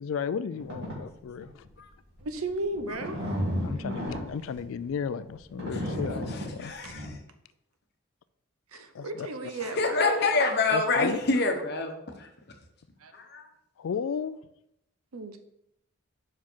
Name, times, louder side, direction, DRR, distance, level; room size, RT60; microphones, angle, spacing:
voice 1, 0.0-1.7 3.6-6.8 8.9-9.3 10.7-11.2 13.8-14.4, left 6 dB, 70° left, 15 dB, 0.3 m, -34 dB
sound 1, 0.5-1.0 1.4-1.7 2.2-7.1, equal, 55° right, 2.4 m, -33 dB
voice 2, 2.2-3.2 6.8-6.9 8.7-10.0 13.0-13.1 15.1-15.4, right 2 dB, 85° right, 8 dB, 0.8 m, -34 dB
voice 3, 6.6-7.1 9.8-12.3 13.1-13.5, left 3 dB, 50° left, 4 dB, 0.9 m, -26 dB
5.7 x 4.8 x 4.5 m, 0.78 s
head